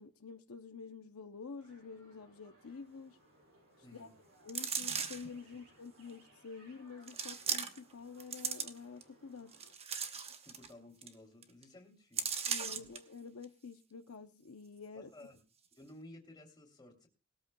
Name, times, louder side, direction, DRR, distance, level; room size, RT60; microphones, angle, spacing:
voice 1, 0.0-3.2 3.9-4.1 4.4-9.5 12.5-15.1, left 5 dB, 75° left, 0.7 m, -49 dB
sound 1, 1.6-9.7, right 1 dB, 70° right, 6.2 m, -65 dB
voice 2, 3.8-4.1 5.5-5.6 10.4-12.3 12.7-12.9 14.9-15.4 15.8-17.1, left 1 dB, 20° left, 3.1 m, -55 dB
sound 2, 4.5-5.3 6.1-6.2 7.1-7.9 8.2-9.0 9.5-10.7 11.0-11.1 11.4-11.6 12.2-13.0 13.4-13.5, right 6 dB, 30° right, 0.9 m, -37 dB
20.5 x 13.0 x 2.3 m
head